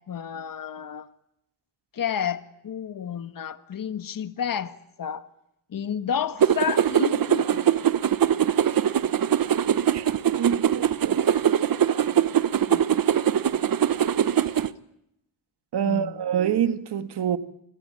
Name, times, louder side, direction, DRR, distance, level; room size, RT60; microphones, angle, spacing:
voice 1, 0.1-1.1 1.9-5.3 5.7-7.7 12.7-12.9 14.2-14.4 15.8-16.2, left 8 dB, 55° left, 1.6 m, -31 dB
sound 1, 6.4-14.7, right 9 dB, 60° right, 1.2 m, -22 dB
voice 2, 10.4-11.3 15.7-17.4, right 8 dB, 90° right, 1.9 m, -26 dB
28.5 x 22.5 x 8.8 m
wide cardioid pair, 115°, 39 cm